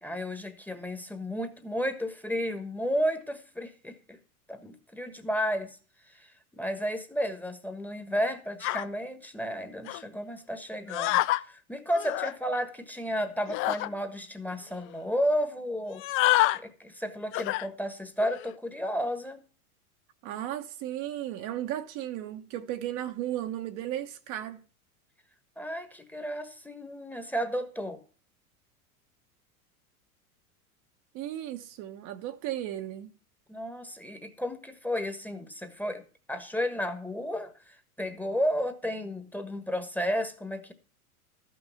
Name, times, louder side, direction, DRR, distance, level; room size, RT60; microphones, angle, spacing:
voice 1, 0.0-4.2 4.5-5.8 6.1-16.0 16.5-19.4 25.6-28.0 33.5-36.0 36.3-40.7, equal, 5° left, 1.4 m, -32 dB
sound 1, 8.6-8.8 9.9-10.0 10.9-11.4 11.9-12.3 13.5-13.9 14.5-14.6 14.8-15.0 15.9-16.6 17.3-17.7 18.2-18.5, left 16 dB, 30° left, 0.4 m, -27 dB
voice 2, 20.2-24.6 31.1-33.1, right 12 dB, 45° right, 1.2 m, -35 dB
13.5 x 6.2 x 5.7 m
hypercardioid pair, 95°, 45 cm